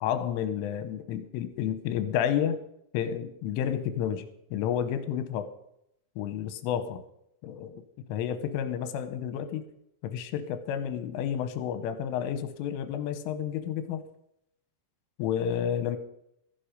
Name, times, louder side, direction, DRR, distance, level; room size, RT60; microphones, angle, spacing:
voice 1, 0.0-2.7 2.9-5.5 6.2-7.0 7.4-7.8 8.1-9.6 10.0-14.0 15.2-16.0, left 9 dB, 80° left, 10 dB, 3.4 m, -30 dB
15.0 x 10.5 x 5.2 m, 0.78 s
omnidirectional pair, 5.8 m